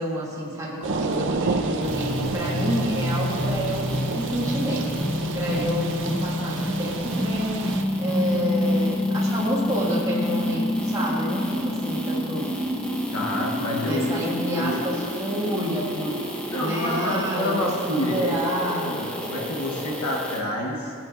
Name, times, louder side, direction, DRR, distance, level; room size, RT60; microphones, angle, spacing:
voice 1, 0.0-5.0 5.3-7.7 8.0-12.5 13.8-17.5 17.9-19.1, equal, 15° right, -6 dB, 1.8 m, -29 dB
sound 1, 0.8-7.8, right 3 dB, 55° right, 0.5 m, -30 dB
sound 2, 1.8-20.4, left 1 dB, 5° left, 0.8 m, -28 dB
voice 2, 5.4-5.7 13.1-14.8 16.5-20.9, left 1 dB, 85° left, -2 dB, 1.2 m, -28 dB
13.5 x 9.0 x 2.5 m, 2.3 s
head